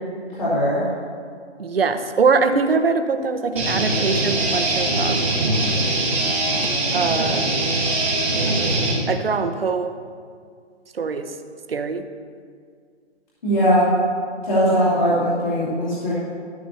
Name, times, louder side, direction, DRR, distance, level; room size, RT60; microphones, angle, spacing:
voice 1, 0.4-0.8 13.4-13.9 14.4-16.1, equal, 40° left, -11 dB, 2.9 m, -19 dB
voice 2, 1.6-5.3 6.9-7.5 8.3-9.9 10.9-11.3 11.7-12.1, right 4 dB, 55° right, 8 dB, 0.8 m, -23 dB
sound 1, 3.6-8.9, right 2 dB, 10° right, 0.9 m, -22 dB
12.5 x 12.0 x 2.8 m, 2.1 s
hypercardioid pair, 170°, 35 cm